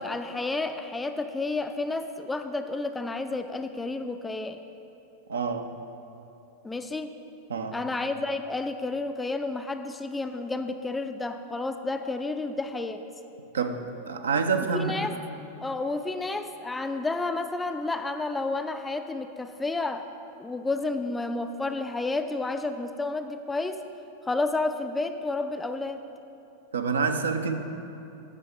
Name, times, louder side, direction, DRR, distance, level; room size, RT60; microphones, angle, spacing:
voice 1, 0.0-4.6 6.6-7.1 7.7-13.0 14.7-15.1 15.6-20.1 20.4-23.9 24.2-26.0, left 3 dB, 10° left, 8 dB, 0.4 m, -31 dB
voice 2, 5.3-5.7 7.5-7.8 13.5-14.9 26.7-27.6, right 5 dB, 70° right, 6 dB, 0.6 m, -27 dB
10.0 x 6.2 x 5.1 m, 2.8 s
figure-of-eight pair, 90°, 0 cm